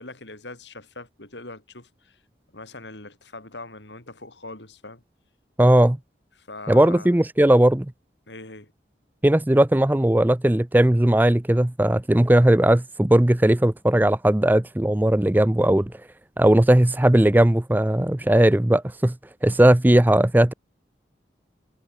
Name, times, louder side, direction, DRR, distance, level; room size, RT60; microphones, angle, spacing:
voice 1, 0.0-2.2 2.5-5.0 6.4-7.2 8.3-8.7, left 2 dB, 85° left, 6.5 m, -41 dB
voice 2, 5.6-6.0 6.7-7.9 9.2-15.9 16.4-19.2 19.4-20.5, right 1 dB, 10° right, 0.4 m, -18 dB
head